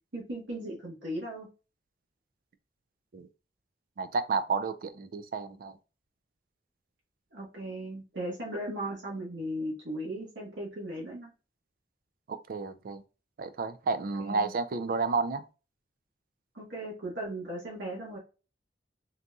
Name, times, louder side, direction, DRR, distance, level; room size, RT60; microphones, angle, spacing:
voice 1, 0.1-1.5 7.3-11.3 14.2-14.5 16.5-18.2, right 1 dB, 85° right, 1.4 m, -37 dB
voice 2, 4.0-5.8 12.3-13.0 13.4-15.4, right 4 dB, 50° right, 0.4 m, -31 dB
3.9 x 2.7 x 2.3 m
head